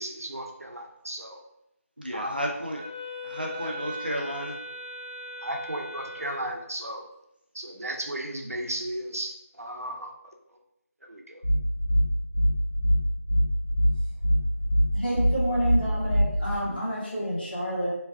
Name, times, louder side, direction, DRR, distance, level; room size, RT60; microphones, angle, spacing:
voice 1, 0.0-1.4 2.1-2.4 5.4-7.0 7.5-10.1 11.1-11.4, right 1 dB, 70° right, 2 dB, 0.7 m, -35 dB
voice 2, 2.0-2.8 3.2-4.6, equal, 40° right, -1 dB, 0.4 m, -32 dB
Wind instrument woodwind instrument, 2.7-6.6, left 1 dB, 15° right, 1.4 m, -39 dB
sound 1, 11.4-16.6, equal, 55° left, 0.8 m, -23 dB
voice 3, 14.9-17.9, equal, 40° left, -7 dB, 1.2 m, -29 dB
3.2 x 2.4 x 3.3 m, 0.83 s
figure-of-eight pair, 180°, 8 cm